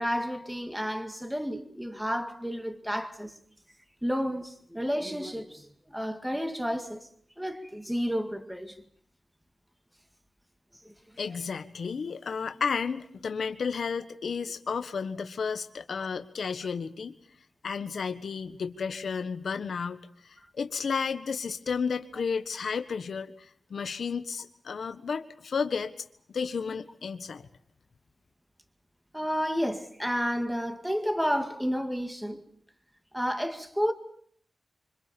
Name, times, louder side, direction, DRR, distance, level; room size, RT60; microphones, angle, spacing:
voice 1, 0.0-3.4 4.0-7.1 7.4-8.8 29.1-32.4 33.1-33.9, equal, 5° right, 2.1 m, -31 dB
voice 2, 11.2-17.1 17.6-20.0 20.2-23.3 23.7-25.9 26.3-27.4, left 5 dB, 80° left, 1.4 m, -32 dB
26.5 x 25.5 x 7.1 m
wide cardioid pair, 105°, 0 cm